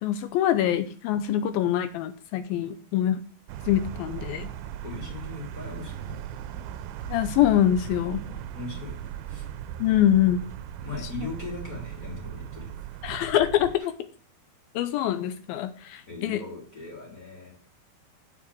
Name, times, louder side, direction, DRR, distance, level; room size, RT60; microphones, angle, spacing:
voice 1, 0.0-3.2 3.7-4.5 7.1-8.2 9.8-10.4 13.0-13.9 14.7-16.4, left 11 dB, 80° left, 10 dB, 2.3 m, -24 dB
sound 1, 3.5-13.8, right 10 dB, 85° right, 2.5 m, -38 dB
voice 2, 4.8-6.2 6.5-6.6 8.2-8.9 9.3-9.4 10.8-12.8 16.1-17.5, left 3 dB, 25° left, -2 dB, 3.1 m, -39 dB
7.3 x 6.0 x 7.6 m, 0.41 s
omnidirectional pair, 4.6 m